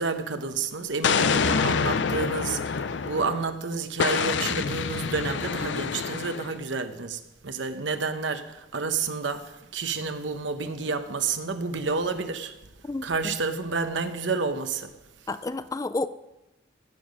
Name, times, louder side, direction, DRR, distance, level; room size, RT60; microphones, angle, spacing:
voice 1, 0.0-12.6 12.8-14.9, right 4 dB, 85° right, 0.9 m, -30 dB
Explosion, 1.0-3.5 4.0-6.6, left 5 dB, 75° left, 0.5 m, -26 dB
voice 2, 12.8-13.3 15.3-16.1, left 2 dB, 20° left, 0.4 m, -31 dB
17.0 x 7.1 x 5.2 m
head